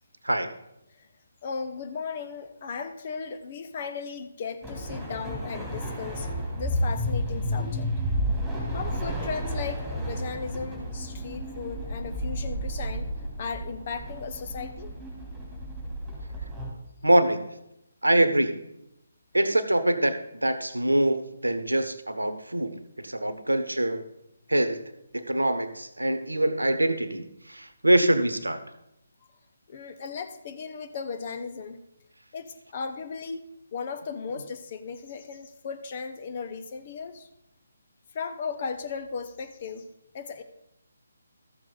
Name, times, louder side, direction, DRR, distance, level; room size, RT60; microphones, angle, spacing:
voice 1, 1.4-6.3 6.6-7.9 8.7-13.1 13.4-14.9 29.7-31.8 32.3-33.4 33.7-37.3 38.1-39.9 40.1-40.4, left 5 dB, 40° left, 7 dB, 1.0 m, -36 dB
sound 1, 4.6-16.7, equal, 5° right, 3.1 m, -32 dB
voice 2, 17.0-17.6 18.0-18.7 19.3-24.1 24.5-24.8 25.1-28.6, right 1 dB, 85° right, 12 dB, 1.0 m, -24 dB
13.5 x 7.2 x 4.0 m, 0.81 s
figure-of-eight pair, 145°, 0 cm